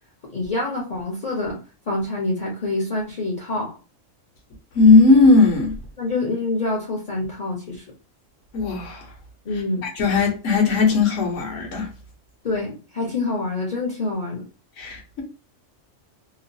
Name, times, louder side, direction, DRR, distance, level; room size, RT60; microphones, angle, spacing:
voice 1, 0.3-1.6 1.9-3.8 6.0-7.8 9.4-9.9 12.4-14.4, left 2 dB, 40° left, 0.9 m, -26 dB
voice 2, 4.7-5.8 8.5-9.0 10.0-11.9 14.8-15.2, left 3 dB, 65° left, 1.2 m, -17 dB
3.0 x 2.3 x 2.6 m
omnidirectional pair, 1.4 m